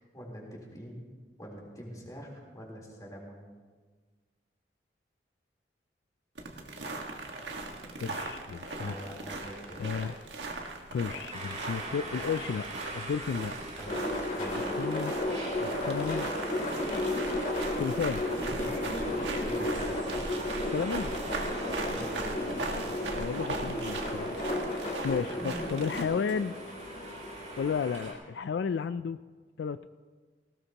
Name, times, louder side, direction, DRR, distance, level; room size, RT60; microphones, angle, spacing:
voice 1, 0.1-1.1 1.4-3.5 8.8-10.1 13.8-14.0 14.3-14.6 18.4-20.2 21.9-22.8 25.3-25.7, equal, 20° left, -2 dB, 3.6 m, -44 dB
sound 1, 6.4-26.0, right 2 dB, 80° right, 1.7 m, -39 dB
voice 2, 8.0-8.9 9.8-10.2 10.6-12.7 12.9-13.5 14.5-15.2 15.6-16.3 17.8-18.4 20.6-21.1 23.2-26.6 27.6-29.2 29.6-29.9, left 6 dB, 75° left, 12 dB, 0.3 m, -33 dB
sound 2, 11.3-28.1, right 2 dB, 40° right, 4.0 m, -44 dB
sound 3, 13.8-27.7, left 1 dB, 50° left, 3.0 m, -34 dB
19.0 x 17.0 x 2.9 m, 1.4 s
head